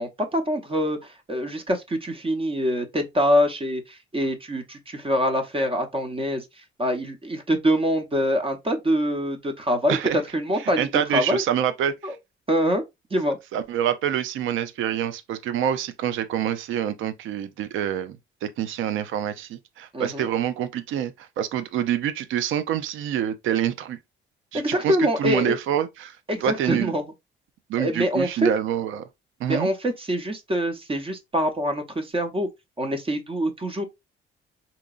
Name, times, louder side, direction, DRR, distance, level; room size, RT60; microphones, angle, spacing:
voice 1, 0.0-10.0 10.3-11.4 12.0-12.1 12.5-12.8 13.1-13.4 19.9-20.3 24.5-25.6 26.3-27.0 27.8-28.5 29.5-32.5 32.8-33.8, equal, 25° right, 0.8 m, -25 dB
voice 2, 10.8-12.2 13.5-24.0 24.5-26.9 27.7-29.1 29.4-29.7, right 10 dB, 80° right, 0.5 m, -26 dB
3.8 x 2.9 x 2.4 m
cardioid pair, 90°, 20 cm